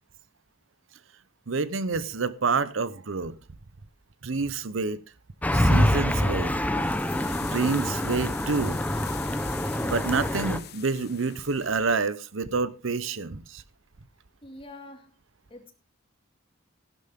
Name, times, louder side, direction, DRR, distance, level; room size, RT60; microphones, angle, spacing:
voice 1, 1.5-3.4 4.2-5.0 5.5-6.6 7.4-8.8 9.8-13.6, right 4 dB, 70° right, 0.8 m, -28 dB
sound 1, 5.4-10.6, left 1 dB, 5° left, 0.8 m, -26 dB
sound 2, 6.1-12.0, left 10 dB, 50° left, 1.3 m, -44 dB
voice 2, 14.4-15.1 15.5-15.7, left 1 dB, 25° left, 2.2 m, -45 dB
15.0 x 11.5 x 3.6 m
head